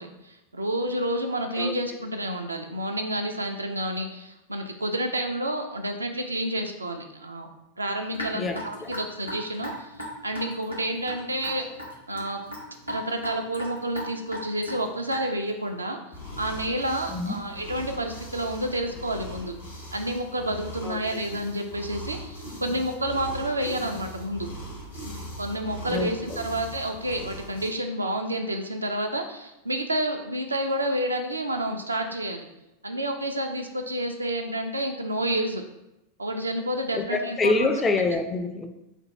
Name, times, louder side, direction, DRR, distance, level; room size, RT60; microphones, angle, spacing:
voice 1, 0.0-7.5 7.8-9.7 10.2-11.7 12.1-12.4 12.9-16.0 16.4-19.6 19.9-24.5 25.4-32.5 32.8-35.6 36.2-37.7, right 1 dB, 80° right, 4 dB, 0.4 m, -29 dB
Raindrop / Drip, 8.1-15.5, equal, 90° left, 0.9 m, -37 dB
voice 2, 8.3-8.9 17.1-17.4 20.8-21.2 25.9-26.4 36.9-38.7, left 3 dB, 20° left, 6 dB, 0.3 m, -27 dB
sound 1, 16.1-27.7, equal, 75° left, 1.4 m, -40 dB
3.3 x 2.2 x 4.1 m, 0.91 s
figure-of-eight pair, 90°, 0 cm